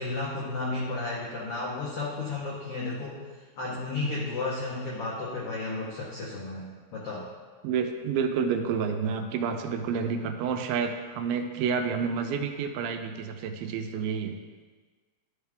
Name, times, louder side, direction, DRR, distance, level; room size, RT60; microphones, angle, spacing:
voice 1, 0.0-3.2 3.6-7.3, left 3 dB, 85° left, -5 dB, 1.3 m, -33 dB
voice 2, 7.6-14.3, right 6 dB, 85° right, 6 dB, 2.4 m, -29 dB
12.0 x 4.7 x 3.4 m, 1.4 s
omnidirectional pair, 4.2 m